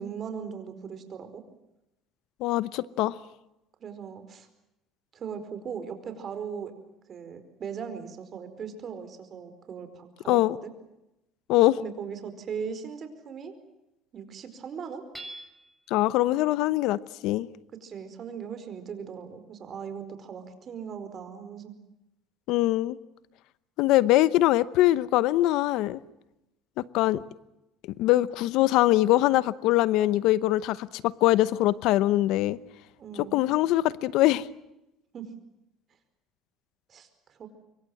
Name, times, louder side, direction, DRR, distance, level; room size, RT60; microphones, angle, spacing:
voice 1, 0.0-1.4 3.8-4.5 5.1-6.7 7.1-10.7 11.8-13.5 14.1-15.0 17.8-21.8 33.0-33.4 35.1-35.3 36.9-37.5, right 7 dB, 40° right, 9 dB, 4.7 m, -39 dB
voice 2, 2.4-3.2 10.3-10.6 11.5-11.8 15.9-17.5 22.5-23.0 23.8-26.0 26.8-27.2 28.0-32.6 33.2-34.5, left 16 dB, 70° left, 18 dB, 0.8 m, -23 dB
Hammer / Chink clink, 15.1-15.9, right 1 dB, 5° right, 6.0 m, -43 dB
26.0 x 23.5 x 7.8 m, 0.90 s
cardioid pair, 115°, 0 cm